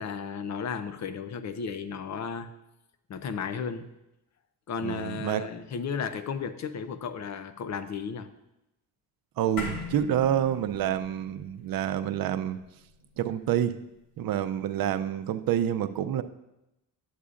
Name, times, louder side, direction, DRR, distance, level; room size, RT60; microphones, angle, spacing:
voice 1, 0.0-2.5 3.1-3.9 4.7-8.3, left 6 dB, 50° left, 11 dB, 0.5 m, -34 dB
voice 2, 4.8-5.4 9.4-12.6 13.2-13.8 14.2-16.2, right 10 dB, 75° right, 11 dB, 0.5 m, -28 dB
sound 1, 9.6-14.2, left 4 dB, 85° left, 1.4 m, -42 dB
11.0 x 8.2 x 2.5 m, 0.90 s
cardioid pair, 130°, 35 cm